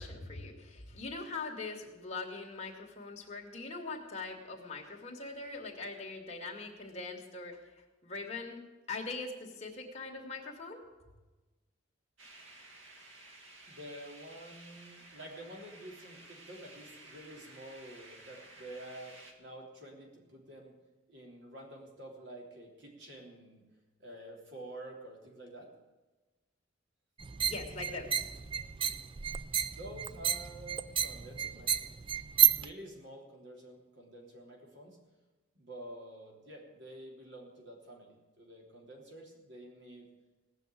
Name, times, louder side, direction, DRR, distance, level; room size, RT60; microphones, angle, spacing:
voice 1, 0.0-7.6 8.0-10.8 27.4-28.2 28.5-28.7, left 3 dB, 35° left, 0 dB, 2.3 m, -42 dB
sound 1, 12.2-19.3, right 2 dB, 85° right, 2.1 m, -54 dB
voice 2, 13.7-20.8 21.1-23.7 24.0-25.7 29.6-31.7 32.4-35.0 35.5-40.1, right 1 dB, 65° right, 0 dB, 3.3 m, -49 dB
sound 2, 27.2-32.7, right 9 dB, 25° right, 0.4 m, -31 dB
17.5 x 6.5 x 9.1 m, 1.2 s
head